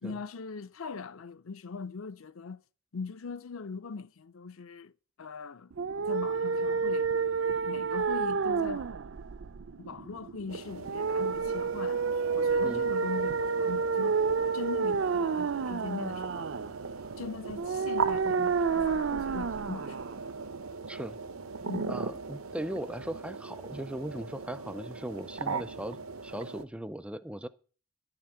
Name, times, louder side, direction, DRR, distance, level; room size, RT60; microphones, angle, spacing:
voice 1, 0.0-2.6 2.9-4.9 5.2-5.7 6.1-7.1 7.7-8.9 9.8-12.0 12.3-14.2 14.5-16.5 17.2-20.1 21.7-22.0, left 4 dB, 75° left, 0.6 m, -41 dB
sound 1, 5.7-20.7, right 5 dB, 60° right, 0.5 m, -30 dB
sound 2, 10.5-26.6, right 5 dB, 80° right, 0.9 m, -39 dB
voice 2, 20.9-21.2 21.9-26.0 26.2-27.5, right 1 dB, 5° right, 0.4 m, -38 dB
11.5 x 6.0 x 8.5 m
head